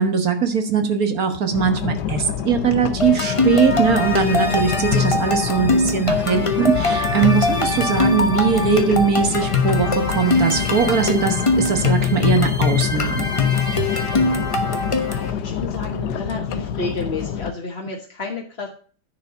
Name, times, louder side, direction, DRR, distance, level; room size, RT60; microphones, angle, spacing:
voice 1, 0.0-13.3, right 6 dB, 60° right, 7 dB, 1.8 m, -20 dB
sound 1, 1.5-17.5, left 8 dB, 75° left, 1.3 m, -27 dB
sound 2, 3.0-15.3, left 3 dB, 25° left, 0.9 m, -22 dB
voice 2, 6.1-6.6 15.1-18.7, left 3 dB, 40° left, -1 dB, 1.6 m, -31 dB
10.0 x 4.9 x 6.8 m, 0.42 s
omnidirectional pair, 1.8 m